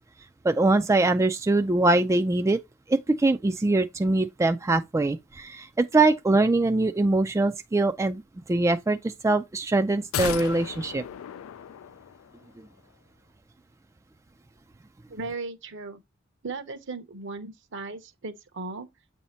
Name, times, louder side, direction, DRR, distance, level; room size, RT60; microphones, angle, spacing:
voice 1, 0.4-2.6 2.9-8.2 8.5-11.0, right 2 dB, 15° right, 0.3 m, -23 dB
sound 1, 10.1-12.5 12.8-12.9, left 10 dB, 85° left, 0.3 m, -35 dB
voice 2, 15.1-16.0 16.4-18.9, right 3 dB, 65° right, 0.9 m, -37 dB
8.1 x 2.8 x 4.3 m
head